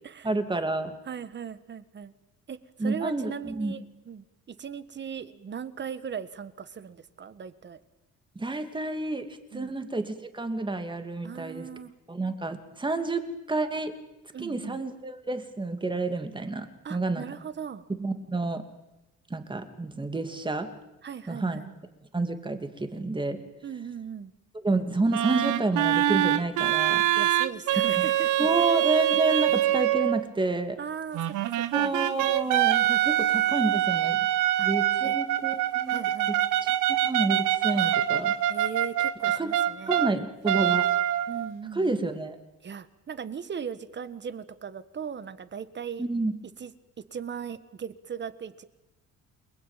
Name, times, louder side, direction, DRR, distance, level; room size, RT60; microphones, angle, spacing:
voice 1, 0.2-0.9 2.8-3.7 8.4-9.3 9.5-11.7 12.1-13.9 14.4-17.2 18.0-18.6 19.3-20.7 21.3-21.6 22.1-23.4 24.6-27.0 28.0-28.1 28.4-30.8 31.7-34.2 34.6-36.4 36.9-38.3 39.4-39.5 39.9-40.9 41.7-42.3 46.0-46.3, right 2 dB, 15° right, 8 dB, 2.6 m, -29 dB
voice 2, 1.0-2.1 2.5-7.8 9.5-9.7 11.2-11.9 14.3-14.8 16.8-17.9 21.0-21.7 23.6-24.3 27.1-28.8 30.8-31.9 34.6-34.7 35.0-35.2 35.9-36.3 37.7-37.9 38.5-40.0 41.3-42.1 42.6-46.1 46.6-48.6, right 7 dB, 35° right, 14 dB, 1.5 m, -38 dB
sound 1, 25.1-30.2 31.1-40.1 40.4-41.5, right 12 dB, 85° right, 1.3 m, -24 dB
29.0 x 20.0 x 9.1 m, 0.97 s
cardioid pair, 120°, 30 cm